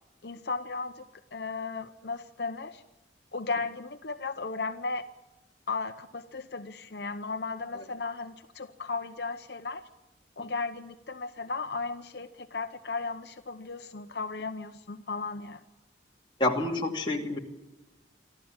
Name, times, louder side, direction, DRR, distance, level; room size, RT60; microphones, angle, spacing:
voice 1, 0.2-1.0 1.3-2.8 3.3-5.1 5.7-9.9 10.4-15.6, left 4 dB, 60° left, 7 dB, 0.8 m, -35 dB
voice 2, 16.4-17.4, left 2 dB, 25° left, 0 dB, 2.4 m, -28 dB
26.0 x 13.5 x 8.8 m, 1.1 s
head